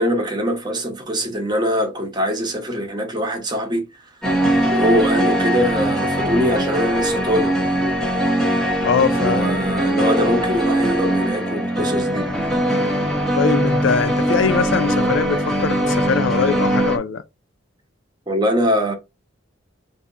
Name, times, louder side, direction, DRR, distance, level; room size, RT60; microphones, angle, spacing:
voice 1, 0.0-4.1 4.6-7.5 9.1-12.3 18.3-18.9, equal, 20° right, 1.0 m, -22 dB
sound 1, 4.2-17.0, right 1 dB, 5° left, 0.8 m, -21 dB
voice 2, 8.8-9.5 13.3-17.2, left 6 dB, 70° left, 0.4 m, -21 dB
3.5 x 2.7 x 3.9 m
head